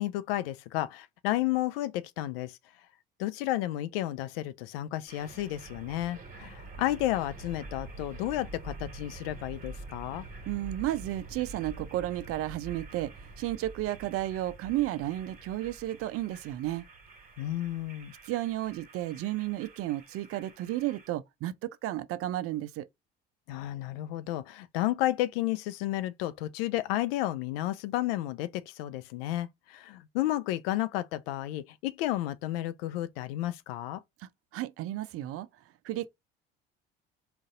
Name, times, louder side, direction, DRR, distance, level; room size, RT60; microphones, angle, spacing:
voice 1, 0.0-2.6 3.2-10.3 17.4-18.1 23.5-34.0, left 15 dB, 70° left, 0.5 m, -32 dB
sound 1, 5.1-21.1, right 3 dB, 30° right, 1.5 m, -47 dB
voice 2, 10.5-16.8 18.2-22.9 34.2-35.5 35.8-36.1, right 14 dB, 50° right, 0.5 m, -33 dB
3.9 x 2.4 x 3.7 m
hypercardioid pair, 60°, 30 cm